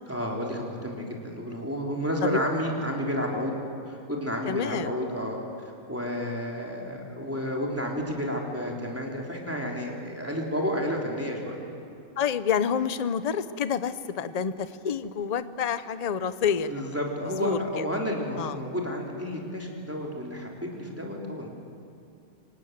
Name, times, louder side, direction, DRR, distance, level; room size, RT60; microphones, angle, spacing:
voice 1, 0.1-3.5 3.9-5.4 5.9-11.6 16.6-21.5, equal, 10° right, -1 dB, 3.5 m, -31 dB
voice 2, 4.5-4.9 12.2-17.0 17.4-17.9 18.4-18.5, left 7 dB, 35° left, 13 dB, 0.7 m, -28 dB
25.5 x 18.5 x 9.3 m, 2.6 s
omnidirectional pair, 1.5 m